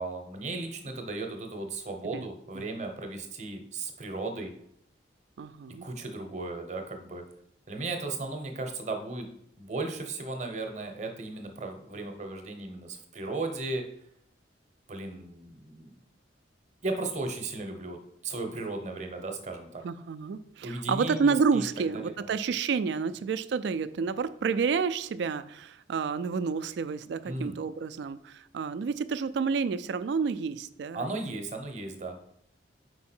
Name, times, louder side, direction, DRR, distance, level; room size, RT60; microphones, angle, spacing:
voice 1, 0.0-4.5 5.8-7.2 7.7-9.3 9.6-13.8 14.9-16.0 16.8-19.8 20.6-22.5 27.2-27.6 30.9-32.2, right 2 dB, 40° right, 4 dB, 0.8 m, -36 dB
voice 2, 5.4-5.8 19.8-31.0, right 5 dB, 65° right, 15 dB, 0.3 m, -29 dB
4.7 x 4.7 x 4.3 m, 0.71 s
head